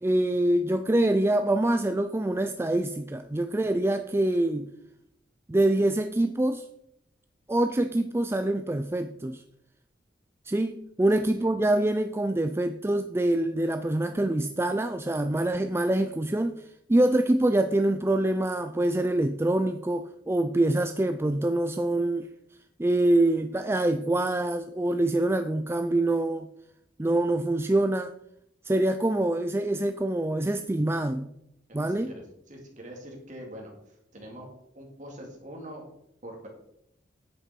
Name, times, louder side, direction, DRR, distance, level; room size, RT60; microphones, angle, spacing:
voice 1, 0.0-4.7 5.5-6.6 7.5-9.4 10.5-22.3 22.8-26.5 27.0-28.1 28.6-31.3 31.7-32.1, right 1 dB, 15° right, 0.4 m, -25 dB
voice 2, 11.1-11.5 31.8-32.2 32.5-33.7 34.1-34.5 34.7-35.8 36.2-36.5, equal, 45° right, 2.8 m, -43 dB
9.8 x 8.2 x 4.5 m
head